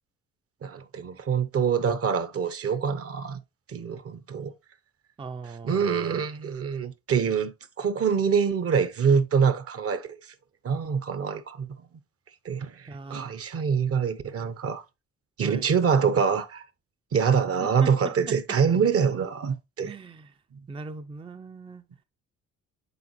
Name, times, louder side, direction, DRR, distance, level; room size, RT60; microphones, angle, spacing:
voice 1, 0.6-3.4 3.7-4.5 5.6-10.3 10.6-11.9 12.4-14.8 15.4-16.6 17.1-19.9 20.5-20.7, right 6 dB, 50° right, 0.9 m, -25 dB
voice 2, 5.2-6.0 12.9-13.3 15.4-15.7 17.6-18.4 19.8-20.4 20.7-21.8, right 4 dB, 20° right, 0.5 m, -40 dB
6.9 x 4.5 x 3.0 m
cardioid pair, 90°, 30 cm